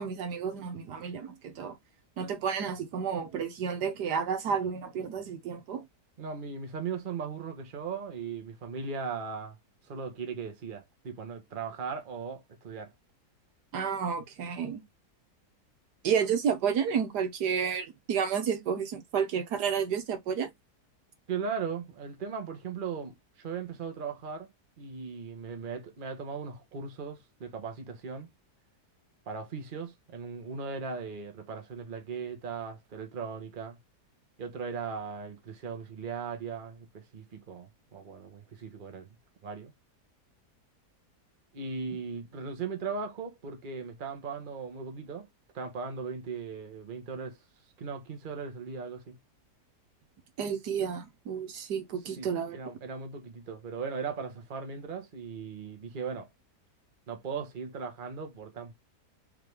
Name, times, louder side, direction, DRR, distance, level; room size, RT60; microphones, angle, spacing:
voice 1, 0.0-1.8 2.2-5.8 13.7-14.8 16.0-20.5 50.4-52.6, right 7 dB, 85° right, 1.5 m, -31 dB
voice 2, 6.2-9.6 9.9-12.9 21.3-24.5 24.8-28.3 29.3-33.8 34.4-39.1 39.4-39.7 41.5-45.3 45.5-47.4 47.8-49.2 52.1-56.3 57.1-58.7, right 5 dB, 35° right, 1.0 m, -38 dB
3.7 x 3.4 x 3.2 m
omnidirectional pair, 1.7 m